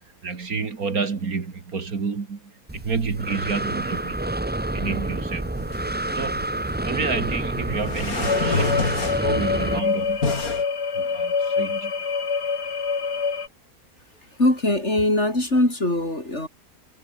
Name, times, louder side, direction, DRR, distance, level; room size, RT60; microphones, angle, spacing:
voice 1, 0.2-4.5 4.7-5.6 6.2-6.5 6.8-10.3 10.9-11.9, right 5 dB, 65° right, 2.6 m, -30 dB
Breathing, 2.7-9.8, right 1 dB, 10° right, 0.5 m, -28 dB
sound 1, 5.6-10.6, left 4 dB, 65° left, 3.6 m, -29 dB
sound 2, 8.2-13.5, left 5 dB, 85° left, 3.0 m, -26 dB
voice 2, 14.4-16.5, left 1 dB, 45° left, 7.2 m, -21 dB
omnidirectional pair, 1.7 m